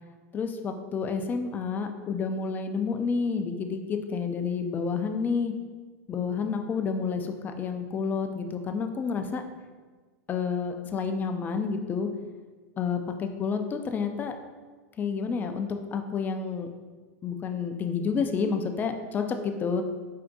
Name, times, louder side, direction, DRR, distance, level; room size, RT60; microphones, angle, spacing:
voice 1, 0.3-5.5 6.1-9.4 10.3-12.1 12.8-14.4 15.0-16.7 17.2-19.8, left 5 dB, 20° left, 6 dB, 0.4 m, -29 dB
4.5 x 2.5 x 3.8 m, 1.4 s
hypercardioid pair, 115°, 8 cm